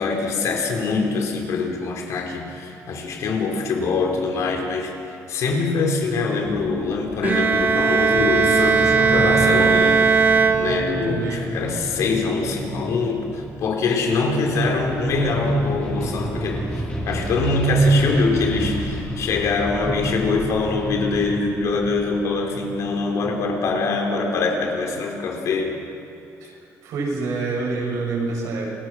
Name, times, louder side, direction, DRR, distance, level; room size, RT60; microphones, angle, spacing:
voice 1, 0.0-10.1 10.6-16.6 17.1-25.8, left 3 dB, 60° left, 2 dB, 4.0 m, -23 dB
sound 1, 6.4-24.0, equal, 20° left, 5.1 m, -31 dB
Bowed string instrument, 7.2-11.2, right 5 dB, 30° right, 2.1 m, -18 dB
voice 2, 11.0-11.6 26.4-26.6 26.8-28.7, right 3 dB, 75° right, -2 dB, 7.8 m, -27 dB
29.0 x 21.0 x 6.1 m, 2.7 s
cardioid pair, 150°, 6 cm